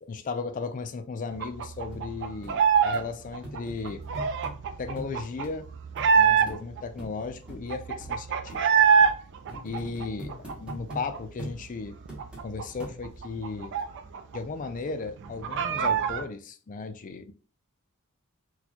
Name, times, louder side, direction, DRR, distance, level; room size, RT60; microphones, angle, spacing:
voice 1, 0.0-4.0 4.8-5.7 6.1-8.7 9.6-12.0 12.4-13.7 14.3-17.3, left 4 dB, 35° left, 0.4 m, -36 dB
sound 1, 1.4-3.0 3.3-6.8 7.2-7.3 7.5-9.1 9.5-11.2 11.5-11.6 11.9-14.4 14.6-14.7 15.1-16.2, right 6 dB, 55° right, 0.4 m, -24 dB
sound 2, 1.9-2.0 2.4-2.5 2.9-3.1 3.4-4.6 5.0-5.1 5.4-5.5 6.0-6.1 6.5-6.6 7.0-7.1 7.5-7.6 8.0-8.1 8.5-8.6 9.0-9.1 9.5-11.1 11.4-11.6 12.1-12.5 12.8-13.2 13.8-13.9, equal, 5° right, 1.0 m, -41 dB
4.1 x 2.2 x 2.9 m
head